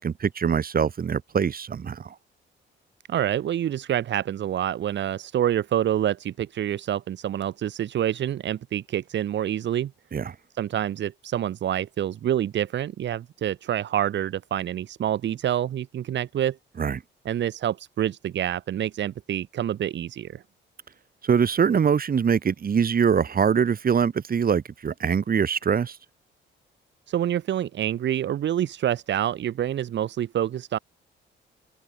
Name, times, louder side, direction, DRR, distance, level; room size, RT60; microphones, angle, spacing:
voice 1, 0.0-2.1 10.1-10.2 16.8-17.0 21.2-26.0, right 7 dB, 45° right, 6.1 m, -23 dB
voice 2, 3.1-9.9 10.5-16.6 17.2-20.4 27.1-30.8, right 11 dB, 65° right, 1.7 m, -27 dB
open air
cardioid pair, 90°, 20 cm